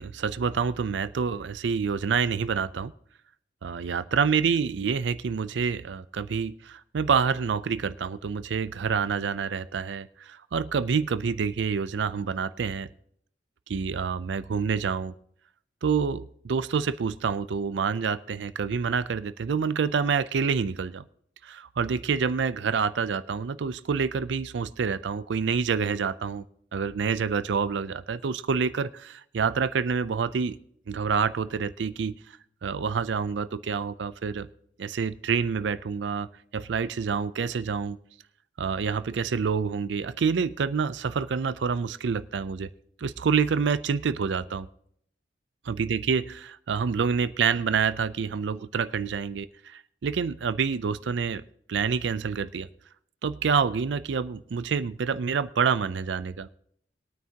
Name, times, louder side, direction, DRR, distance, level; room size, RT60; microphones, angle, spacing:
voice 1, 0.0-2.9 3.6-12.9 13.7-15.1 15.8-21.0 21.4-26.4 26.7-30.6 30.9-32.1 32.6-34.5 34.8-36.3 36.5-38.0 38.6-42.7 43.0-44.7 45.7-51.4 51.7-52.7 53.2-56.5, right 6 dB, 75° right, 15 dB, 0.4 m, -27 dB
20.5 x 9.3 x 2.8 m, 0.67 s
head